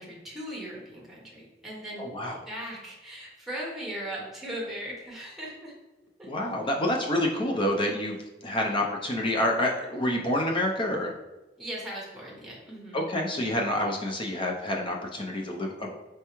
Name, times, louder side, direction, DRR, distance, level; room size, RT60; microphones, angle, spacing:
voice 1, 0.0-2.1 2.5-5.8 6.2-6.3 8.6-8.8 11.6-13.0, right 1 dB, ahead, -4 dB, 1.0 m, -38 dB
voice 2, 2.0-2.4 6.2-8.2 8.4-11.1 12.9-15.9, left 1 dB, 30° left, 0 dB, 0.5 m, -28 dB
4.5 x 3.3 x 3.0 m, 1.0 s
head